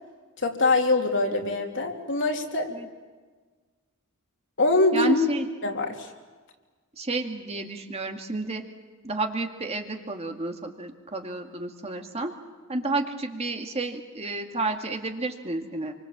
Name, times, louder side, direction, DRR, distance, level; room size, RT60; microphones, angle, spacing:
voice 1, 0.4-2.7 4.6-5.2 5.6-6.1, left 2 dB, 60° left, 2 dB, 3.1 m, -23 dB
voice 2, 4.9-5.5 7.0-8.6 9.0-12.3 12.7-15.9, right 2 dB, 30° right, 4 dB, 2.1 m, -31 dB
28.0 x 25.0 x 7.5 m, 1.4 s
head